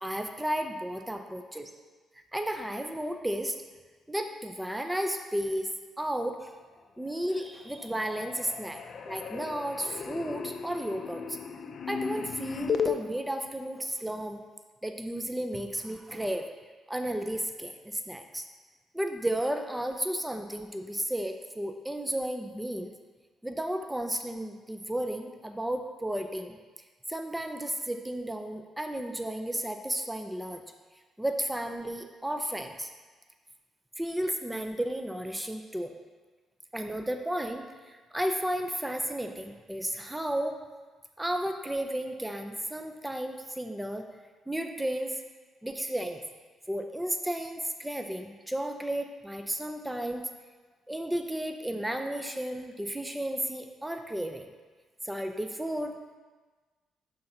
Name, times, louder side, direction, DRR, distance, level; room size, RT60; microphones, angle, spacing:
voice 1, 0.0-1.7 2.3-3.5 4.1-5.7 6.0-6.5 7.0-8.8 9.1-11.4 11.9-14.4 14.8-16.5 16.9-18.4 18.9-22.9 23.4-26.6 27.1-30.6 31.2-32.9 34.0-35.9 36.7-40.5 41.2-44.0 44.5-45.2 45.6-46.2 46.7-50.3 50.9-54.4 55.0-55.9, right 1 dB, 5° right, 5 dB, 0.5 m, -33 dB
sound 1, 7.0-7.5 7.8-13.0, left 6 dB, 50° left, 0.5 m, -35 dB
5.7 x 3.8 x 5.7 m, 1.3 s
cardioid pair, 90°, 0 cm